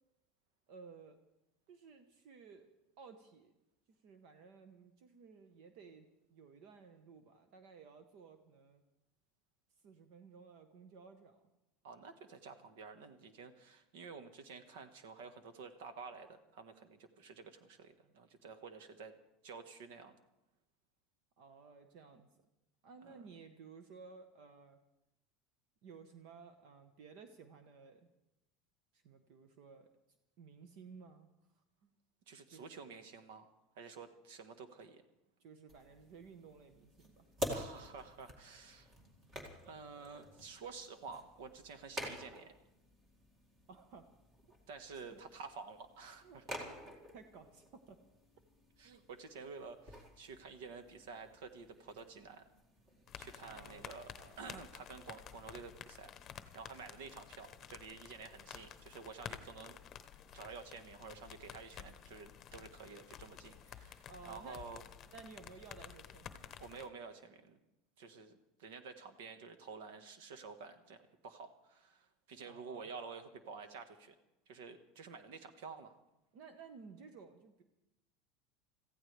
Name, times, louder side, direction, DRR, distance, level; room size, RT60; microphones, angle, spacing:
voice 1, 0.7-1.2 1.7-2.7 3.0-3.5 3.9-8.8 9.8-11.5 21.4-22.3 22.8-24.8 25.8-28.1 28.9-29.9 30.4-31.3 31.8-31.9 32.5-32.7 35.4-37.3 43.7-44.1 44.9-45.2 46.2-46.8 47.1-48.0 53.4-54.5 64.1-64.6 65.1-66.5 72.4-72.9 76.3-77.6, right 5 dB, 60° right, 7 dB, 1.2 m, -56 dB
voice 2, 11.8-19.2 19.4-20.1 23.0-23.2 32.3-33.5 33.7-35.0 37.5-38.9 39.6-42.5 44.7-46.4 48.8-52.5 53.2-56.1 56.5-59.8 60.3-64.8 66.6-67.6 68.0-74.1 74.5-75.9, right 5 dB, 85° right, 8 dB, 1.5 m, -50 dB
sound 1, 35.7-53.3, equal, 25° right, 2.3 m, -49 dB
sound 2, 53.1-66.9, left 9 dB, 30° left, 0.9 m, -52 dB
25.5 x 15.0 x 3.4 m, 0.90 s
supercardioid pair, 150°, 0 cm